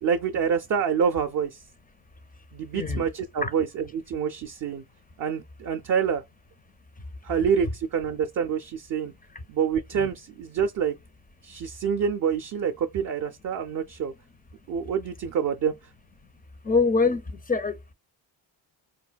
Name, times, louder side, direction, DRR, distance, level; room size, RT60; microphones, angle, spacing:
voice 1, 0.0-1.6 2.5-4.8 5.2-6.2 7.2-9.1 9.5-10.9 11.4-14.1 14.7-15.7, right 7 dB, 45° right, 0.5 m, -27 dB
voice 2, 2.7-3.0 3.4-3.5 16.6-17.8, left 4 dB, 20° left, 0.4 m, -24 dB
4.1 x 2.2 x 2.2 m
supercardioid pair, 55°, 46 cm